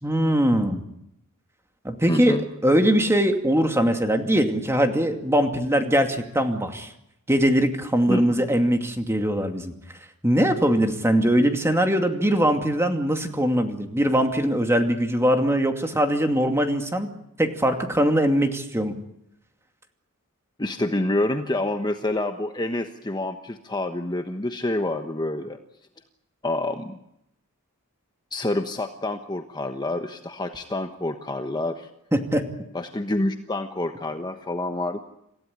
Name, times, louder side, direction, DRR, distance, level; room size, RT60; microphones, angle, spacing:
voice 1, 0.0-0.8 1.8-2.4 2.6-6.9 7.3-9.7 10.2-17.1 17.4-18.9 32.1-32.4, equal, 10° right, 5 dB, 2.4 m, -21 dB
voice 2, 2.1-2.4 8.1-8.5 20.6-25.6 26.4-27.0 28.3-31.9 32.7-35.0, left 2 dB, 20° left, 6 dB, 1.2 m, -27 dB
27.5 x 16.0 x 9.6 m, 0.80 s
head